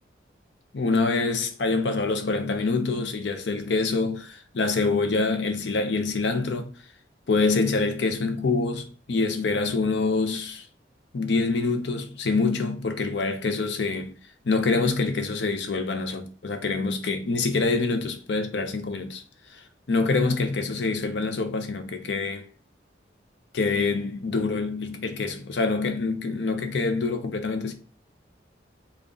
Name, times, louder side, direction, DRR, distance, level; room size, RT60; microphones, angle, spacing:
voice 1, 0.7-6.7 7.3-10.6 11.1-14.1 14.4-19.2 19.5-22.5 23.5-27.7, left 3 dB, 75° left, 0.6 m, -26 dB
3.8 x 2.3 x 3.5 m
head